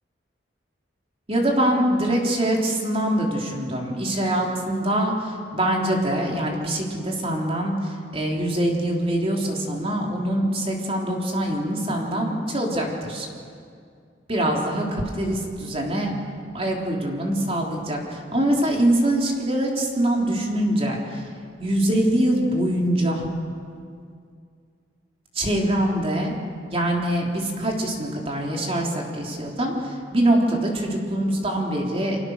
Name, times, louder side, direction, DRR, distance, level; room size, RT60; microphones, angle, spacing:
voice 1, 1.3-13.3 14.3-16.1 16.5-21.3 21.6-23.2 25.3-26.3 26.7-32.2, right 1 dB, 30° right, -1 dB, 3.8 m, -24 dB
30.0 x 24.0 x 6.7 m, 2.2 s
head